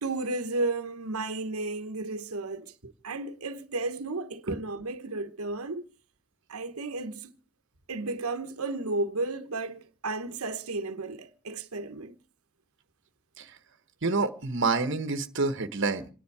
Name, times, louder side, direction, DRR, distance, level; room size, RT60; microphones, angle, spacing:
voice 1, 0.0-2.7 3.0-5.8 6.5-7.3 7.9-12.2, right 2 dB, 85° right, 1.1 m, -33 dB
voice 2, 14.0-16.1, right 3 dB, 55° right, 1.2 m, -27 dB
27.5 x 10.5 x 4.8 m
head